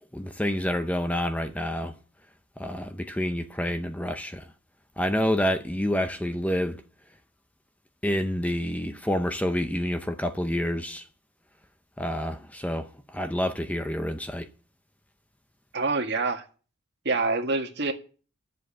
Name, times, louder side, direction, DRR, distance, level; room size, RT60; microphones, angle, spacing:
voice 1, 0.1-1.9 2.6-4.5 5.0-6.8 8.0-11.0 12.0-14.5, equal, 5° left, 0.6 m, -28 dB
voice 2, 15.7-16.4 17.1-17.9, right 3 dB, 55° right, 1.8 m, -26 dB
10.5 x 7.6 x 8.7 m
head